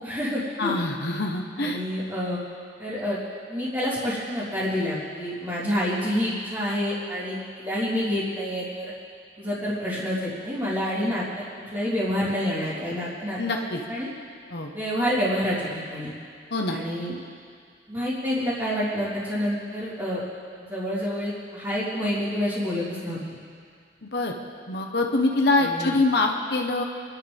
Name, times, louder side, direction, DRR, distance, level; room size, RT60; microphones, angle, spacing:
voice 1, 0.0-0.7 1.6-2.4 2.8-3.2 3.5-8.9 9.4-11.4 11.7-13.4 13.9-14.1 14.7-15.6 15.9-16.1 16.7-17.2 17.9-20.2 20.7-23.4 25.6-25.9, equal, 20° right, -13 dB, 3.4 m, -28 dB
voice 2, 0.6-1.8 13.4-13.8 14.5-14.7 16.5-16.8 24.0-24.4 24.7-26.8, left 2 dB, 60° left, 2 dB, 1.2 m, -24 dB
28.5 x 12.0 x 3.6 m, 2.2 s
head